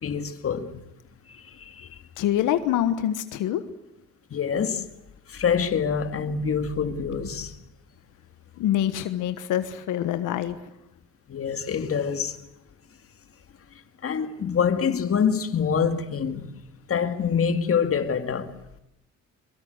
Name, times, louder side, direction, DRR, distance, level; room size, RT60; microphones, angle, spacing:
voice 1, 0.0-0.8 1.3-1.9 4.3-4.8 5.3-7.5 11.3-12.4 14.0-16.5 16.9-18.5, left 7 dB, 50° left, 2.2 m, -26 dB
voice 2, 2.2-3.6 8.6-10.6, left 11 dB, 85° left, 1.4 m, -25 dB
23.5 x 22.5 x 8.0 m
cardioid pair, 90°, 30 cm